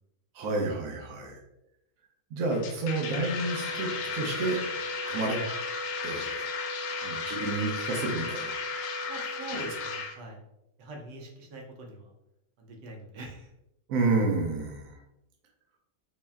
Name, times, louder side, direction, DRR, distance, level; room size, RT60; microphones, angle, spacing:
voice 1, 0.3-1.4 2.3-4.6 5.1-5.4 6.0-6.5 7.0-8.6 9.4-9.7 13.9-14.9, right 3 dB, 60° right, 1 dB, 1.0 m, -30 dB
sound 1, 2.5-10.1, left 6 dB, 75° left, 1.1 m, -35 dB
sound 2, 3.3-10.0, right 1 dB, 55° left, 0.8 m, -40 dB
voice 2, 9.1-10.4 10.8-12.1 12.6-13.5, right 2 dB, 80° right, 1 dB, 1.4 m, -43 dB
4.3 x 2.1 x 3.4 m, 0.86 s
omnidirectional pair, 1.9 m